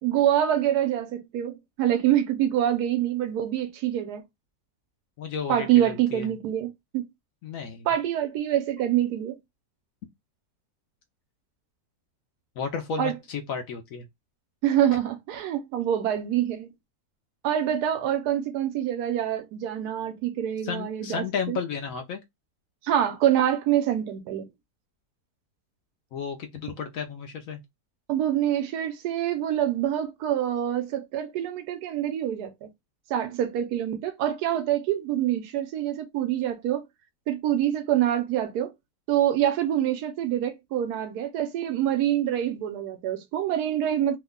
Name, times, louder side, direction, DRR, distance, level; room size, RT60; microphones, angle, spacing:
voice 1, 0.0-4.2 5.5-7.1 7.9-9.4 13.0-13.1 14.6-16.7 17.4-21.6 22.8-24.5 28.1-32.7 33.1-36.8 37.3-38.7 39.1-44.2, right 11 dB, 80° right, 1.1 m, -26 dB
voice 2, 5.2-6.3 7.4-7.9 12.6-14.1 20.6-22.2 26.1-27.6, left 6 dB, 70° left, 0.9 m, -33 dB
3.0 x 2.1 x 3.5 m
omnidirectional pair, 1.7 m